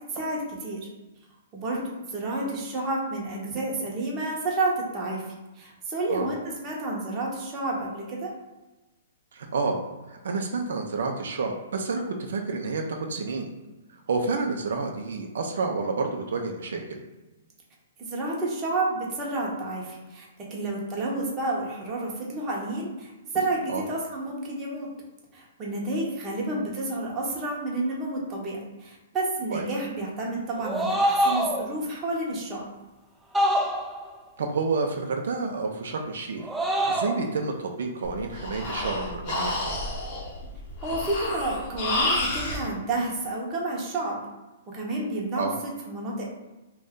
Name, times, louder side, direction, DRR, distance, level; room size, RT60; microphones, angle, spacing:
voice 1, 0.1-0.9 1.5-8.3 18.1-24.9 25.3-32.6 40.8-44.2 44.7-46.2, right 2 dB, 20° right, -3 dB, 0.7 m, -30 dB
voice 2, 9.3-9.8 10.1-13.5 14.1-17.0 23.7-23.8 29.5-29.7 34.4-36.5 36.7-39.8 45.3-45.5, right 4 dB, 75° right, 2 dB, 0.4 m, -29 dB
sound 1, 30.6-31.7 33.3-34.1 36.4-37.2, equal, 5° right, 0.3 m, -25 dB
Breathing, 38.0-42.6, left 2 dB, 35° left, 0.8 m, -30 dB
2.6 x 2.2 x 3.6 m, 1.1 s
hypercardioid pair, 155°, 0 cm